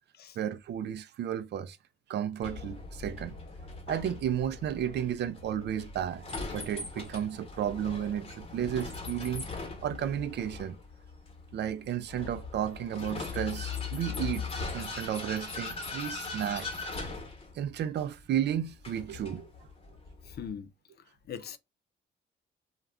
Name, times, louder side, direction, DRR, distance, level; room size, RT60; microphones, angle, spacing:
voice 1, 0.4-1.8 2.1-3.4 3.9-10.8 11.5-14.5 14.7-16.7 17.5-19.5, right 10 dB, 60° right, 0.4 m, -33 dB
Vehicle, 2.4-20.5, left 4 dB, 30° left, 1.0 m, -40 dB
voice 2, 20.3-20.7 21.3-21.6, left 8 dB, 55° left, 0.5 m, -40 dB
2.3 x 2.2 x 3.5 m
cardioid pair, 90°, 20 cm